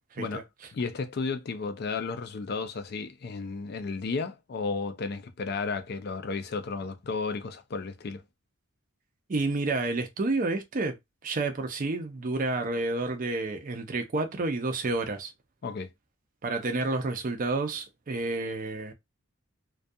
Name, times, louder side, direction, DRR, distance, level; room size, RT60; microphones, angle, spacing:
voice 1, 0.7-8.2 15.6-15.9, left 4 dB, 50° left, 0.4 m, -33 dB
voice 2, 9.3-11.0 11.2-15.3 16.4-18.9, right 2 dB, 40° right, 0.5 m, -30 dB
2.3 x 2.3 x 2.6 m
head